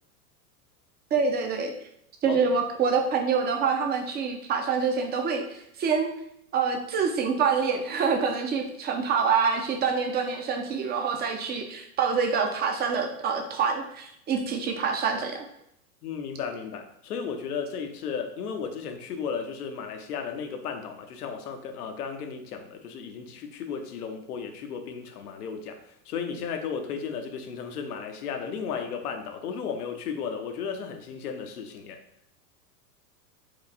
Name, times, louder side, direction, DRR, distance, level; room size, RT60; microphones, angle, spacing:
voice 1, 1.1-1.7 2.2-6.1 6.5-15.5, right 5 dB, 20° right, 4 dB, 0.6 m, -26 dB
voice 2, 16.0-25.8 26.1-32.0, left 6 dB, 85° left, 6 dB, 0.9 m, -34 dB
4.7 x 2.5 x 4.1 m, 0.75 s
hypercardioid pair, 120°, 44 cm